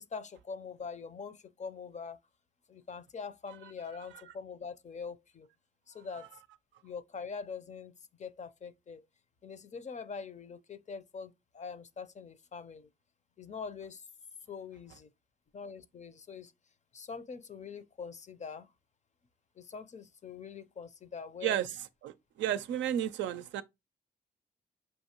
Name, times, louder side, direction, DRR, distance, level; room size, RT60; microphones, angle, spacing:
voice 1, 0.0-2.2 2.7-5.5 5.9-6.3 6.8-9.1 9.4-12.9 13.4-14.0 14.5-15.1 15.5-16.5 16.9-18.7 19.6-21.7, left 5 dB, 40° left, 0.5 m, -44 dB
voice 2, 21.4-21.8 22.0-23.6, right 11 dB, 90° right, 0.4 m, -32 dB
5.6 x 2.7 x 2.9 m
cardioid pair, 65°, 19 cm